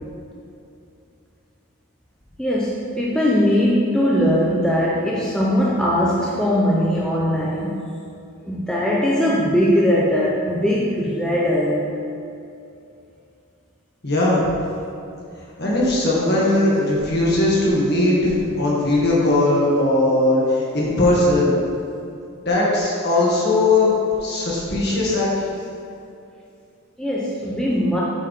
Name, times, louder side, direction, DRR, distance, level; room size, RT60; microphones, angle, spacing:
voice 1, 2.4-7.8 8.5-11.9 27.0-28.0, equal, 5° left, -5 dB, 0.6 m, -20 dB
voice 2, 14.0-14.5 15.6-21.5 22.5-25.3, left 2 dB, 45° left, -5 dB, 1.9 m, -19 dB
8.1 x 4.6 x 5.4 m, 2.6 s
head